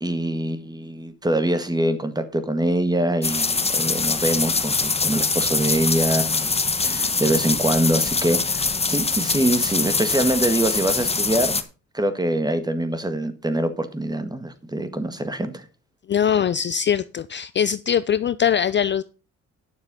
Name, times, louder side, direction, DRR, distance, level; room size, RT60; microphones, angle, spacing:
voice 1, 0.0-11.6 11.9-15.6, right 1 dB, 15° right, 1.7 m, -24 dB
sound 1, 3.2-11.6, left 4 dB, 20° left, 1.1 m, -23 dB
voice 2, 16.1-19.0, left 8 dB, 40° left, 0.5 m, -22 dB
9.7 x 6.7 x 5.4 m
cardioid pair, 90°, 30 cm